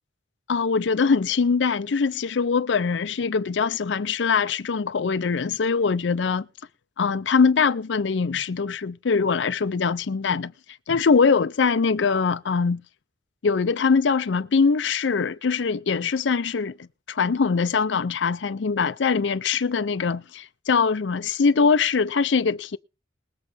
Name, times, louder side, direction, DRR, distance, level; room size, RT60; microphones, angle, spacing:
voice 1, 0.5-6.5 7.0-10.5 10.9-12.8 13.4-16.7 17.1-22.8, left 5 dB, 80° left, 0.5 m, -22 dB
21.0 x 8.2 x 3.4 m
head